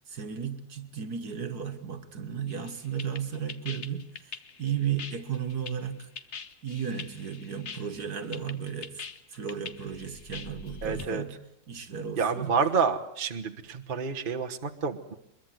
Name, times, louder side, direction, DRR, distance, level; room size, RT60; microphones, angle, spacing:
voice 1, 0.1-4.3 4.6-6.1 6.6-9.0 9.3-11.3 11.7-12.5, right 7 dB, 55° right, 9 dB, 2.2 m, -34 dB
sound 1, 2.5-11.1, left 6 dB, 45° left, 1.2 m, -43 dB
voice 2, 10.8-11.2 12.2-15.1, right 5 dB, 30° right, 4 dB, 1.3 m, -29 dB
23.0 x 22.5 x 7.9 m, 0.75 s
omnidirectional pair, 2.0 m